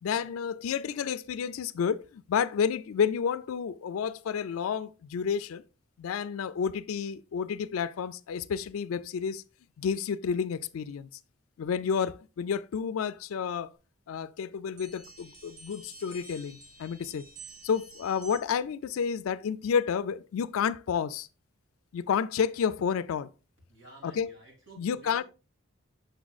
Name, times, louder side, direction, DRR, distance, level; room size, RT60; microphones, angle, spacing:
voice 1, 0.0-5.6 6.0-9.4 9.8-11.1 11.6-13.7 14.1-17.2 17.6-21.3 21.9-23.3 24.0-24.3 24.8-25.2, left 7 dB, 85° left, 0.4 m, -30 dB
sound 1, 14.8-18.7, right 3 dB, 20° right, 1.5 m, -50 dB
voice 2, 23.7-25.2, right 2 dB, 60° right, 3.2 m, -53 dB
6.6 x 6.1 x 2.3 m
head